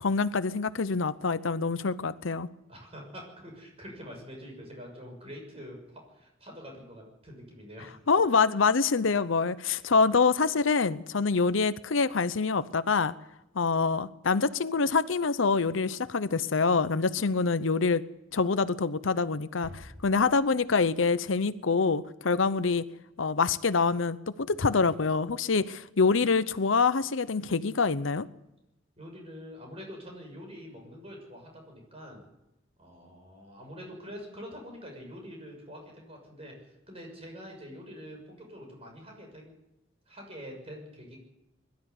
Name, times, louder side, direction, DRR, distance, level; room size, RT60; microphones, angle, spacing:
voice 1, 0.0-2.5 8.1-13.1 13.5-18.0 18.3-22.8 23.2-28.3, left 4 dB, 75° left, 0.8 m, -26 dB
voice 2, 2.7-5.8 6.1-7.9 29.0-32.2 32.8-39.5 40.1-41.2, equal, 30° right, 6.6 m, -45 dB
sound 1, 19.6-21.5, equal, 50° right, 5.9 m, -50 dB
21.5 x 12.5 x 9.8 m
head